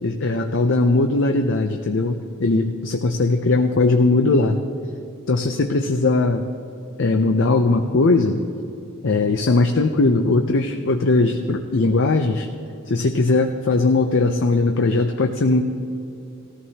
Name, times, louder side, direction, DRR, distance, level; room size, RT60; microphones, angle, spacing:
voice 1, 0.0-4.6 5.3-6.5 7.0-8.4 9.0-12.5 12.9-15.6, left 3 dB, 55° left, 5 dB, 0.6 m, -19 dB
19.0 x 14.0 x 2.8 m, 2.7 s
head